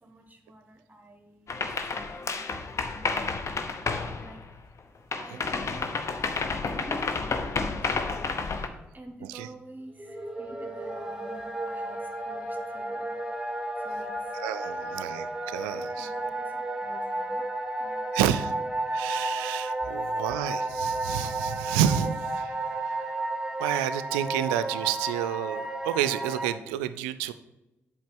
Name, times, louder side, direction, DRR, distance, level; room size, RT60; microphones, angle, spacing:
voice 1, 0.0-1.6 1.9-2.5 2.8-3.7 3.9-4.4 5.2-6.0 6.6-13.2 13.8-14.1 14.6-15.0 16.0-17.4 17.8-18.1, right 1 dB, 30° right, 4 dB, 1.0 m, -49 dB
sound 1, 1.5-4.8 5.1-8.7, left 4 dB, 50° left, 0.9 m, -30 dB
sound 2, 10.0-26.5, right 2 dB, 10° right, 1.5 m, -32 dB
voice 2, 14.3-16.1 18.1-18.5 18.9-23.1 23.6-27.3, right 11 dB, 85° right, 13 dB, 0.4 m, -30 dB
7.7 x 4.9 x 5.3 m, 1.0 s
hypercardioid pair, 40°, 6 cm